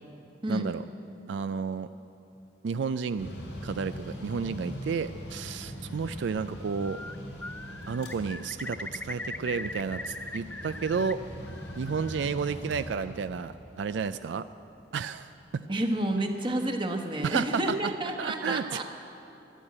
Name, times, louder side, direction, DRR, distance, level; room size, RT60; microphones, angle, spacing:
voice 1, 0.5-0.8 1.3-1.9 2.6-3.3 3.6-7.0 7.9-11.2 11.8-14.4 14.9-15.6 17.2-17.8 18.2-18.8, right 5 dB, 80° right, 12 dB, 0.4 m, -31 dB
Mechanical fan, 3.2-16.5, equal, 85° left, 3.8 m, -42 dB
Bird, 6.6-7.2 7.4-11.1 11.4-12.3, left 2 dB, 10° left, 0.3 m, -40 dB
voice 2, 15.7-18.8, right 1 dB, 25° right, 4 dB, 1.1 m, -30 dB
12.0 x 11.5 x 8.7 m, 2.8 s
head